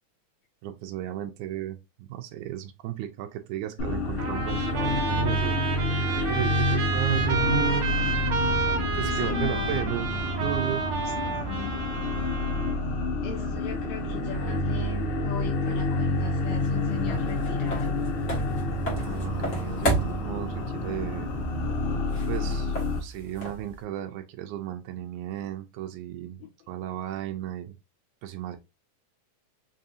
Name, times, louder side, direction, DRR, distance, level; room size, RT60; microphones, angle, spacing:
voice 1, 0.6-8.3 8.9-10.1 10.4-10.8 18.8-21.3 22.3-22.8 23.0-26.4 26.7-27.7 28.2-28.6, right 12 dB, 80° right, 2.0 m, -34 dB
sound 1, 3.8-23.0, left 2 dB, 65° left, 1.5 m, -28 dB
Trumpet, 4.2-12.8, right 4 dB, 55° right, 1.7 m, -31 dB
voice 2, 8.8-9.8 11.0-11.8 13.2-18.0 26.4-26.5, left 10 dB, 80° left, 1.8 m, -39 dB
sound 2, 16.1-23.8, right 1 dB, 40° left, 1.1 m, -34 dB
5.3 x 2.6 x 2.5 m
omnidirectional pair, 3.5 m